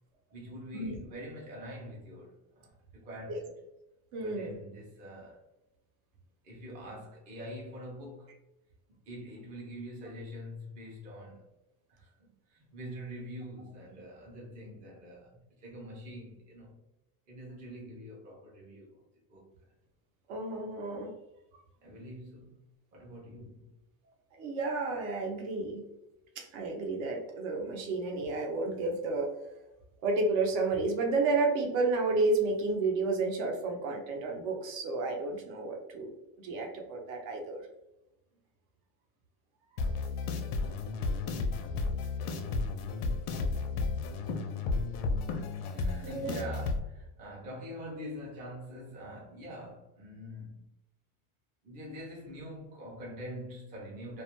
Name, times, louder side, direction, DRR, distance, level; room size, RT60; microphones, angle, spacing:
voice 1, 0.3-3.5 4.2-5.4 6.4-8.3 8.9-11.4 11.9-16.8 17.3-19.0 19.3-19.5 21.8-22.6 22.9-23.7 45.7-50.7 51.6-54.2, equal, 20° right, 0.4 m, -45 dB
voice 2, 4.1-4.6 20.3-21.1 24.4-25.8 26.4-29.3 30.0-36.1 36.4-37.7 46.0-46.5, right 3 dB, 65° right, 0.7 m, -31 dB
sound 1, 39.8-46.8, left 3 dB, 85° left, 0.6 m, -33 dB
2.3 x 2.1 x 2.8 m
cardioid pair, 165°, 43 cm